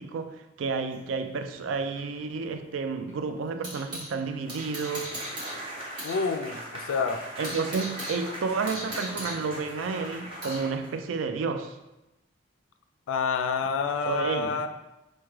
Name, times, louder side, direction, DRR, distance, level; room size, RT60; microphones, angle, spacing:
voice 1, 0.0-5.1 7.4-11.8 14.1-14.6, right 4 dB, 90° right, 0.3 m, -31 dB
sound 1, 0.9-4.1 4.5-6.2 6.5-6.6 7.0-10.7, right 1 dB, 55° right, 1.2 m, -40 dB
sound 2, 4.4-11.2, right 1 dB, 30° right, 0.7 m, -40 dB
voice 2, 6.0-7.2 13.1-14.7, left 5 dB, 90° left, 0.3 m, -28 dB
4.5 x 2.1 x 3.1 m
head